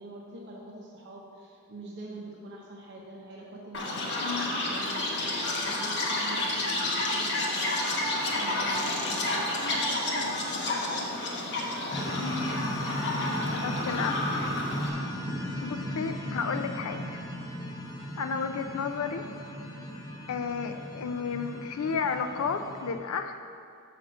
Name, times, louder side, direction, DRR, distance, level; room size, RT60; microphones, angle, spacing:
voice 1, 0.0-4.1 4.6-10.3 10.7-13.0 13.3-14.6 15.5-15.8 18.6-18.8, right 1 dB, 55° right, -2 dB, 0.8 m, -45 dB
Chirp tweet, 3.7-14.9, left 2 dB, 55° left, 1.0 m, -30 dB
voice 2, 4.2-4.6 12.2-12.5 13.6-14.2 15.6-17.2 18.2-19.2 20.3-23.4, left 5 dB, 75° left, 7 dB, 0.4 m, -32 dB
sound 1, 11.9-22.9, equal, 20° left, 0.7 m, -36 dB
6.1 x 5.0 x 6.1 m, 2.5 s
head